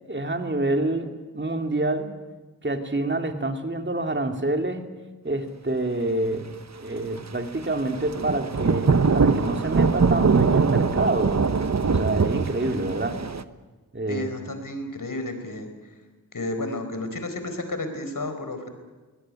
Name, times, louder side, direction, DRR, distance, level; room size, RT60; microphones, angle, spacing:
voice 1, 0.1-2.1 2.6-4.9 5.2-11.4 11.8-13.2 13.9-14.5, right 2 dB, 30° right, 6 dB, 2.9 m, -27 dB
Thunder / Rain, 7.9-13.4, right 5 dB, 45° right, 1.1 m, -22 dB
voice 2, 14.1-15.7 16.3-18.7, left 2 dB, 60° left, 7 dB, 4.6 m, -32 dB
23.5 x 17.5 x 9.9 m, 1.3 s
cardioid pair, 55°, 37 cm